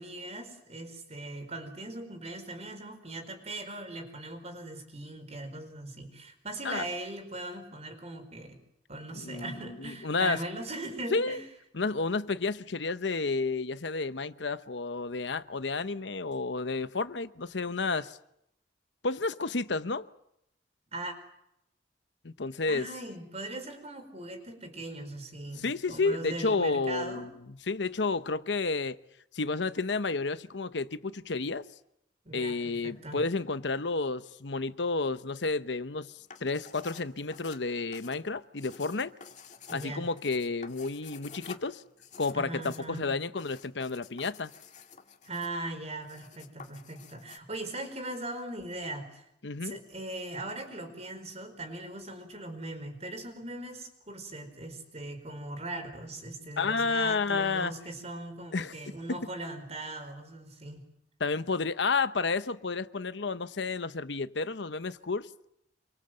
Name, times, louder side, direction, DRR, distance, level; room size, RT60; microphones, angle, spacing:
voice 1, 0.0-8.6 8.9-11.4 20.9-21.1 22.7-27.3 32.2-33.2 39.7-40.1 42.3-43.1 45.2-49.2 49.6-60.8, right 2 dB, 35° right, 4.8 m, -40 dB
voice 2, 9.1-10.4 11.1-11.4 11.7-18.2 19.0-20.1 22.2-22.9 25.6-27.3 27.7-29.0 29.3-31.7 32.3-36.1 36.4-39.1 39.7-41.8 42.2-44.5 49.4-49.8 56.6-57.7 58.5-58.7 59.1-59.2 61.2-65.3, left 3 dB, 75° left, 0.9 m, -31 dB
sound 1, 36.2-47.4, left 5 dB, 45° left, 2.0 m, -50 dB
27.5 x 23.5 x 7.8 m
head